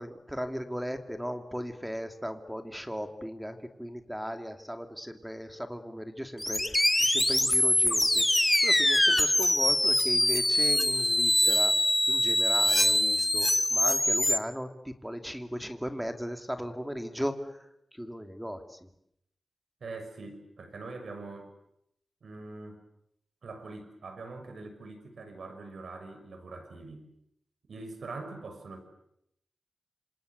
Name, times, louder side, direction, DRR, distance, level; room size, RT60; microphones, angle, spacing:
voice 1, 0.0-11.7 12.1-18.9, equal, 5° right, 6 dB, 2.6 m, -37 dB
sound 1, 6.4-14.4, left 1 dB, 15° left, 1.8 m, -24 dB
voice 2, 19.8-21.5 22.2-22.8 23.4-27.1 27.7-28.8, right 3 dB, 80° right, 6 dB, 6.4 m, -43 dB
28.0 x 25.5 x 8.3 m, 0.76 s
wide cardioid pair, 135°, 0 cm